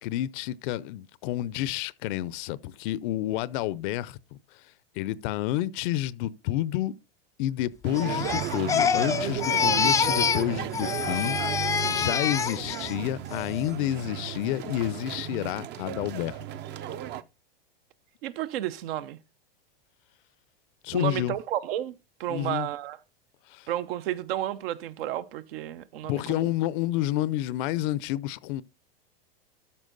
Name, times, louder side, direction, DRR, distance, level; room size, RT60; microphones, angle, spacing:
voice 1, 0.0-4.6 4.9-6.9 7.4-11.4 11.9-16.4 20.8-21.4 22.3-22.7 23.5-23.7 26.0-28.6, left 14 dB, 55° left, 0.6 m, -29 dB
sound 1, 7.8-17.2, right 11 dB, 35° right, 0.6 m, -35 dB
Crying sobbing, 7.9-10.5 10.7-12.9 13.3-13.7, left 6 dB, 10° left, 0.3 m, -26 dB
voice 2, 18.2-19.2 20.9-21.9 22.2-23.0 23.7-26.5, right 12 dB, 70° right, 0.9 m, -32 dB
13.0 x 4.5 x 3.9 m
hypercardioid pair, 120°, 30 cm